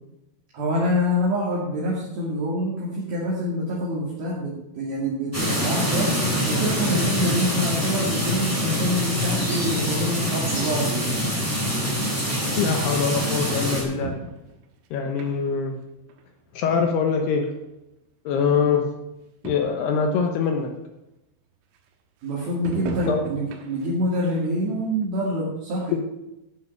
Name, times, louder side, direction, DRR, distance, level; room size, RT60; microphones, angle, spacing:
voice 1, 0.5-6.1 6.5-11.1 22.2-26.0, equal, 55° right, -6 dB, 3.9 m, -26 dB
sound 1, 5.3-13.8, equal, 5° right, 2.3 m, -25 dB
sound 2, 11.8-11.9 12.9-13.0 13.7-14.7 15.2-15.7 16.1-16.2 17.2-17.3 17.5-17.6 18.4-18.5 18.8-18.9 19.2-19.3 19.4-19.9 20.5-20.6 22.6-24.0 24.4-24.5 25.0-25.1, right 5 dB, 85° right, 3.8 m, -36 dB
voice 2, 12.6-14.2 14.9-15.8 16.5-17.5 18.2-18.9 19.4-20.7 22.8-23.2 25.9-26.0, left 6 dB, 70° left, 3 dB, 2.6 m, -23 dB
11.5 x 7.0 x 7.1 m, 0.90 s
omnidirectional pair, 5.7 m